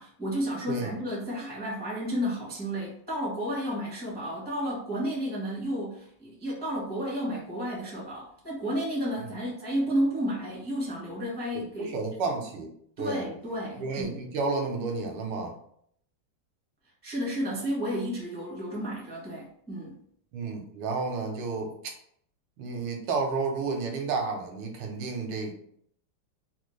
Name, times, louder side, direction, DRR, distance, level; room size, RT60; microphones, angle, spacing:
voice 1, 0.0-11.9 13.0-14.2 17.0-19.9, equal, 5° left, -5 dB, 0.6 m, -32 dB
voice 2, 11.5-12.7 13.0-13.2 13.8-15.6 20.3-21.7 22.6-25.5, right 4 dB, 85° right, 3 dB, 1.6 m, -31 dB
4.1 x 2.3 x 3.1 m, 0.66 s
omnidirectional pair, 2.3 m